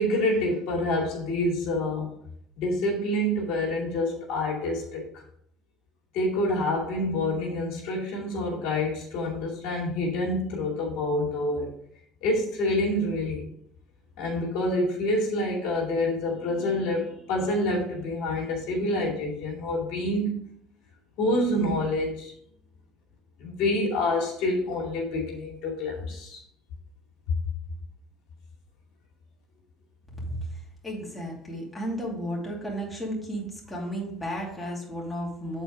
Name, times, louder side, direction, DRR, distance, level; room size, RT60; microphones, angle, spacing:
voice 1, 0.0-2.1 2.6-5.0 6.1-11.7 12.2-13.5 14.2-20.4 21.2-22.3 23.4-26.4, left 1 dB, 70° left, -3 dB, 2.5 m, -27 dB
voice 2, 30.1-35.6, equal, 10° left, -4 dB, 2.6 m, -33 dB
7.0 x 4.4 x 4.7 m, 0.69 s
supercardioid pair, 95°, 0 cm